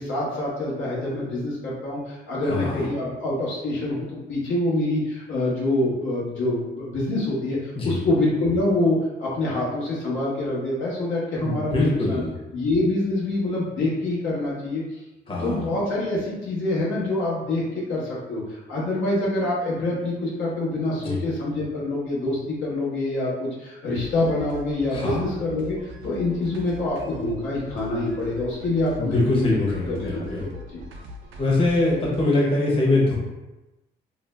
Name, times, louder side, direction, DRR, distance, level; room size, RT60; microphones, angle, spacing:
voice 1, 0.0-12.2 12.5-14.8 15.4-18.4 18.7-25.8 26.0-29.4 29.9-30.8, left 2 dB, 75° left, -6 dB, 1.0 m, -26 dB
voice 2, 2.5-2.8 7.8-8.0 11.4-12.3 15.3-15.7 21.0-21.2 24.9-25.2 29.0-30.5 31.4-33.2, left 2 dB, 25° left, -4 dB, 0.9 m, -23 dB
sound 1, 23.9-32.2, left 1 dB, 85° right, 0.5 m, -41 dB
2.6 x 2.0 x 3.2 m, 1.0 s
cardioid pair, 90°, 20 cm